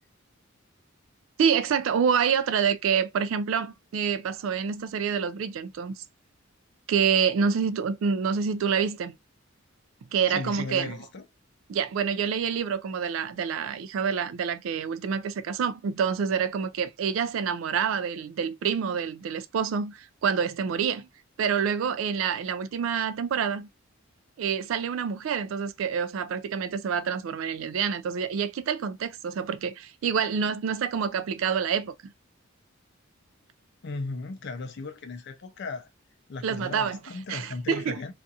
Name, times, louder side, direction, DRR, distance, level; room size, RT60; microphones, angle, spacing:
voice 1, 1.4-5.9 6.9-9.1 10.1-11.0 11.7-21.1 21.4-23.7 24.4-32.1 36.4-37.0 37.3-38.0, right 7 dB, 70° right, 0.3 m, -27 dB
voice 2, 10.3-11.2 33.8-35.9 36.3-38.1, left 3 dB, 55° left, 0.5 m, -36 dB
2.7 x 2.4 x 2.3 m
head